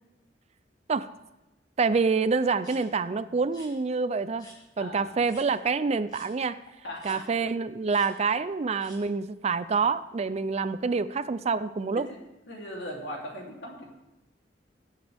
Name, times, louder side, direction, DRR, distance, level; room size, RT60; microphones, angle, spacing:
voice 1, 1.8-4.5 4.8-6.6 7.0-12.0, right 4 dB, 35° right, 15 dB, 0.4 m, -27 dB
sound 1, 2.6-2.8 3.5-3.7 4.4-4.6 5.3-5.5 6.1-6.3 7.0-7.2 7.9-8.1 8.8-9.0, equal, 25° left, 4.6 m, -49 dB
voice 2, 4.8-5.1 6.8-7.2 12.0-12.2 12.5-13.9, equal, 75° left, -2 dB, 3.1 m, -39 dB
22.0 x 7.9 x 3.5 m, 1.0 s
head